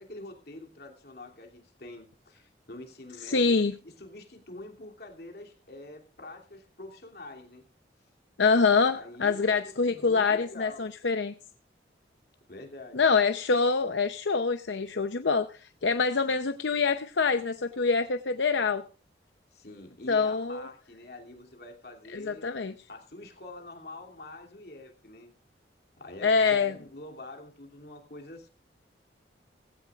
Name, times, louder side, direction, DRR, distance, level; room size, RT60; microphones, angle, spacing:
voice 1, 0.0-7.7 8.8-10.9 12.5-13.0 19.5-22.5 22.9-25.3 26.0-28.5, left 2 dB, 55° left, 2 dB, 2.8 m, -45 dB
voice 2, 3.2-3.7 8.4-11.3 12.9-18.8 20.1-20.7 22.1-22.7 26.2-26.7, left 4 dB, 80° left, 9 dB, 0.7 m, -25 dB
18.0 x 16.0 x 2.4 m, 0.33 s
head